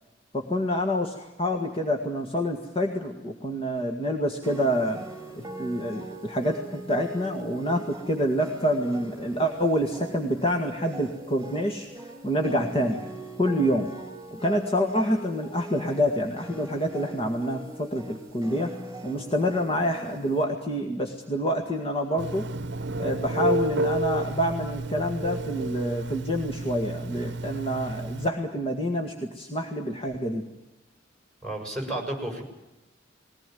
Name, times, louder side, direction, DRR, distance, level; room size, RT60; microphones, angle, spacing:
voice 1, 0.3-5.1 5.3-11.9 12.2-13.0 13.4-13.9 14.3-18.7 19.0-22.5 23.0-30.4, equal, 30° left, 2 dB, 1.9 m, -27 dB
sound 1, 4.4-20.4, right 1 dB, 15° right, 5.8 m, -41 dB
Telephone, 22.2-28.3, right 2 dB, 65° right, 0.8 m, -31 dB
voice 2, 31.4-32.4, right 1 dB, 5° left, 2 dB, 6.9 m, -32 dB
21.0 x 18.5 x 9.3 m, 0.99 s
head